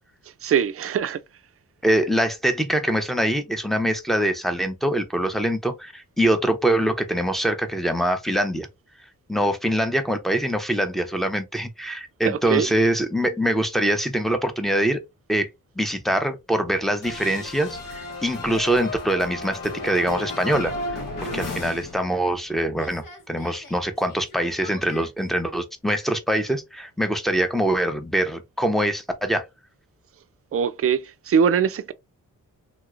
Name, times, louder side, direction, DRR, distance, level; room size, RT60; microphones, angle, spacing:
voice 1, 0.2-1.2 12.2-12.8 30.5-31.9, right 7 dB, 45° right, 0.5 m, -22 dB
voice 2, 1.8-8.7 9.3-15.0 15.3-15.5 15.8-20.7 21.3-29.5, right 1 dB, ahead, 0.6 m, -24 dB
sound 1, 17.0-22.5 22.7-25.1, left 2 dB, 80° left, 1.2 m, -34 dB
3.0 x 2.9 x 2.5 m
cardioid pair, 80°, 33 cm